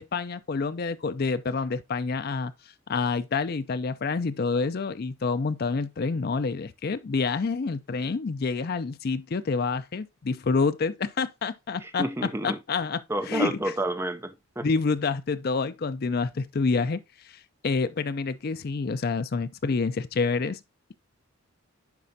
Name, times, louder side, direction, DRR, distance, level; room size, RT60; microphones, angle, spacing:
voice 1, 0.0-2.5 2.9-12.0 12.4-13.0 13.3-13.5 14.6-17.0 17.6-20.6, left 4 dB, 45° left, 0.4 m, -27 dB
voice 2, 11.8-12.6 13.1-14.7, right 1 dB, 10° right, 0.5 m, -30 dB
10.5 x 4.3 x 2.7 m
head